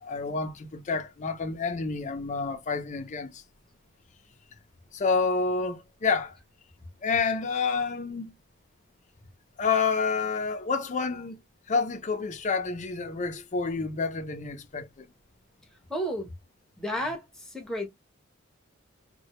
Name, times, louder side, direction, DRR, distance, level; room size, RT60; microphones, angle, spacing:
voice 1, 0.0-3.4 4.9-6.4 7.0-8.3 9.6-11.4 11.7-15.1, left 4 dB, 35° left, 0.4 m, -29 dB
voice 2, 15.9-16.3 16.8-17.9, equal, 5° left, 0.7 m, -32 dB
2.2 x 2.0 x 2.8 m
head